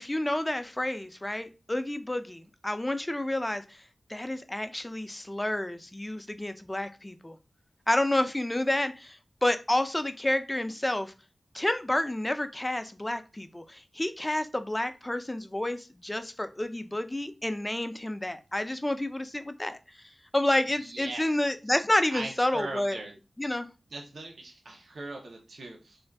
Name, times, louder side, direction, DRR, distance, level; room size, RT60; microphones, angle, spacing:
voice 1, 0.0-3.6 4.1-7.4 7.9-11.1 11.5-19.8 20.3-23.0 23.4-23.7, left 1 dB, 20° left, 9 dB, 0.4 m, -29 dB
voice 2, 20.8-21.5 22.1-23.1 23.9-26.0, right 2 dB, 85° right, 1 dB, 0.6 m, -40 dB
2.5 x 2.3 x 3.3 m, 0.29 s
cardioid pair, 50°, 0 cm